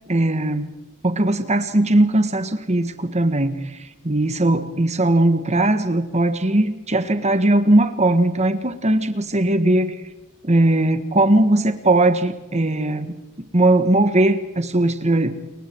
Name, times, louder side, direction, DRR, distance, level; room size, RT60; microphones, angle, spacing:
voice 1, 0.1-0.7 1.0-3.8 4.0-9.9 10.4-13.1 13.5-15.3, right 1 dB, 30° right, 10 dB, 1.7 m, -19 dB
29.5 x 22.5 x 4.7 m, 1.0 s
head